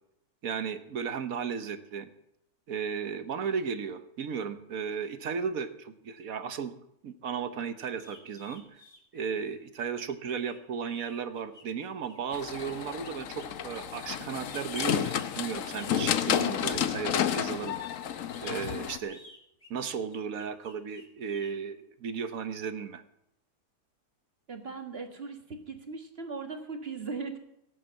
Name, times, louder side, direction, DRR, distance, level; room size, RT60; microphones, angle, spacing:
voice 1, 0.4-2.1 2.7-6.7 7.0-8.8 9.1-17.8 18.4-19.2 19.7-23.0, right 6 dB, 60° right, 10 dB, 1.3 m, -35 dB
sound 1, 8.0-17.3 18.1-21.5, left 2 dB, 20° left, 1.9 m, -55 dB
sound 2, 12.3-19.0, left 9 dB, 60° left, 1.0 m, -31 dB
voice 2, 24.5-25.4 25.7-27.4, right 4 dB, 35° right, 5 dB, 1.7 m, -38 dB
17.0 x 7.4 x 7.5 m, 0.80 s
omnidirectional pair, 1.8 m